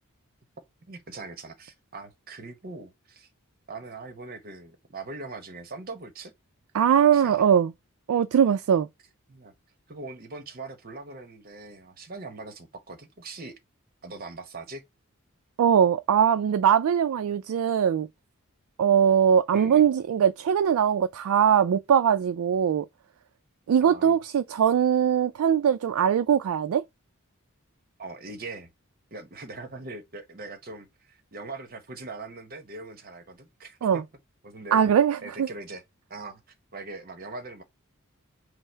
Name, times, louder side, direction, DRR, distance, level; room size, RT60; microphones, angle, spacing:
voice 1, 0.8-3.3 3.7-6.3 7.1-7.5 9.3-9.5 9.9-13.6 14.0-14.8 19.5-19.9 23.8-24.2 28.0-28.7 29.1-34.0 34.4-34.8 35.2-35.8 36.1-36.4 36.7-37.6, right 3 dB, 45° right, 0.9 m, -41 dB
voice 2, 6.7-7.7 8.1-8.9 15.6-18.1 18.8-22.9 23.7-26.8 33.8-34.0 34.7-35.5, right 8 dB, 85° right, 0.3 m, -21 dB
5.5 x 2.0 x 4.4 m
head